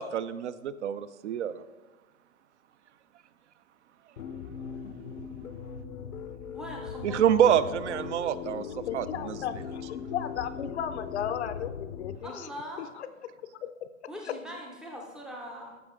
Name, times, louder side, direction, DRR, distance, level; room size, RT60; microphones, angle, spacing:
voice 1, 0.0-1.6 7.0-8.7 8.9-9.4, right 9 dB, 55° right, 14 dB, 0.5 m, -26 dB
sound 1, 4.2-12.2, left 7 dB, 90° left, 1.0 m, -39 dB
voice 2, 6.5-7.6 7.9-8.0 12.2-12.9 14.1-15.8, equal, ahead, 0 dB, 0.5 m, -41 dB
voice 3, 8.6-12.5 12.8-13.1 13.6-14.4, left 9 dB, 55° left, 13 dB, 0.6 m, -36 dB
13.5 x 4.9 x 3.6 m, 1.2 s
hypercardioid pair, 145°, 41 cm